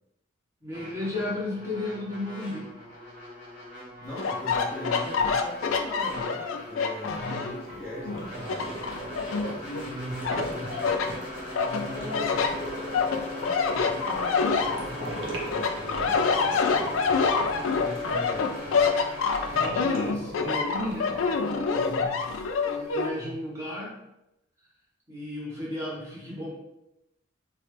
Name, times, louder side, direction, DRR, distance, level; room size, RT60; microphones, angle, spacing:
voice 1, 0.6-2.7 7.1-7.4 9.6-10.8 11.6-12.4 18.6-18.9 19.5-22.2 22.6-23.9 25.1-26.5, left 1 dB, 15° right, -6 dB, 1.0 m, -35 dB
sound 1, 0.7-19.6, left 1 dB, 40° right, 1.1 m, -40 dB
voice 2, 4.0-8.8 11.9-12.3 13.4-17.1 17.8-18.9 21.7-22.1, left 1 dB, 5° left, -10 dB, 0.5 m, -40 dB
sound 2, 4.2-7.6 8.1-9.8 10.2-11.1 11.6-15.2 15.5-23.1, left 5 dB, 85° left, 0.3 m, -26 dB
sound 3, 7.7-18.5 19.5-21.4, right 1 dB, 70° right, 0.8 m, -39 dB
3.1 x 2.1 x 3.2 m, 0.88 s
head